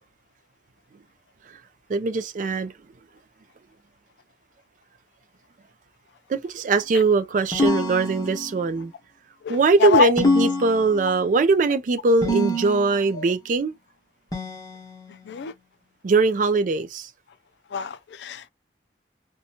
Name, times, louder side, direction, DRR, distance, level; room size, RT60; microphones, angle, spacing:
voice 1, 1.9-2.7 6.3-8.9 9.5-13.7 16.0-17.1, right 3 dB, 45° right, 0.4 m, -21 dB
sound 1, 7.5-8.7 10.2-11.3 12.2-13.1 14.3-15.3, left 1 dB, 20° left, 1.0 m, -26 dB
voice 2, 9.4-10.1 13.2-13.3 15.3-15.5 17.7-18.5, left 7 dB, 75° left, 0.3 m, -24 dB
2.7 x 2.2 x 2.8 m
head